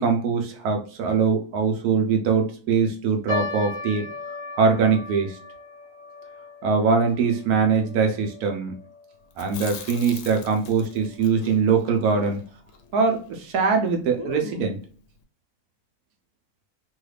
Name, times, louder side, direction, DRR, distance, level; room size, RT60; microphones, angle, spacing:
voice 1, 0.0-4.1 4.6-5.4 6.6-8.7 9.4-12.4 12.9-13.2 13.5-14.8, right 5 dB, 80° right, 4 dB, 1.2 m, -22 dB
sound 1, 3.3-9.8 10.0-10.1 10.9-11.2 11.8-11.9 12.2-12.4, left 2 dB, 40° left, 0.4 m, -37 dB
Chewing mastication, 9.3-13.5 13.7-13.8 14.2-14.9, left 7 dB, 75° left, 1.0 m, -40 dB
3.1 x 2.4 x 3.2 m, 0.42 s
omnidirectional pair, 1.6 m